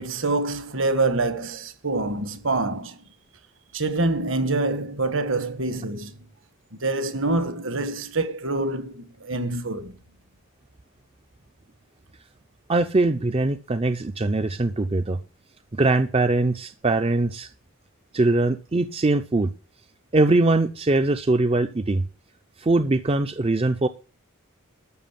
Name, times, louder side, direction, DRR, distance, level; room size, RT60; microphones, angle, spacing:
voice 1, 0.0-3.0 3.7-6.3 6.7-10.0, right 2 dB, 60° right, 1.8 m, -26 dB
voice 2, 12.7-15.2 15.8-17.5 18.1-19.5 20.1-22.0 22.6-23.9, right 2 dB, 25° right, 0.5 m, -22 dB
12.5 x 6.4 x 7.5 m
head